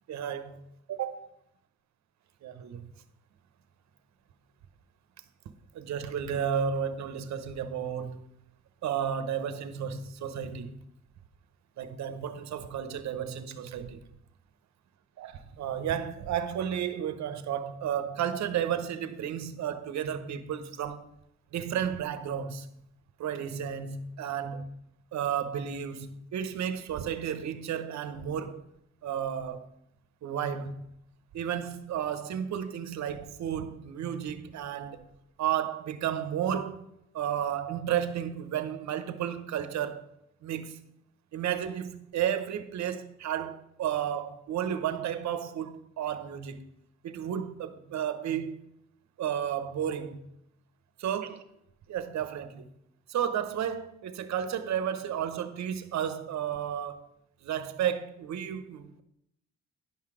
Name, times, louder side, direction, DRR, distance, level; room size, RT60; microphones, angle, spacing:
voice 1, 0.1-0.6 0.9-1.3 2.4-2.9 5.7-8.2 8.8-10.8 11.8-14.0 15.2-15.3 15.6-21.1 21.5-22.7 23.2-24.7 25.1-28.6 29.0-29.7 30.2-30.8 31.3-35.0 35.4-36.9 37.1-40.1 40.4-40.8 41.3-46.6 47.0-48.6 49.2-50.2 51.0-51.4 51.9-52.7 53.1-57.1 57.4-59.0, right 9 dB, 65° right, 0.9 m, -32 dB
10.5 x 5.8 x 4.9 m
cardioid pair, 90°, 30 cm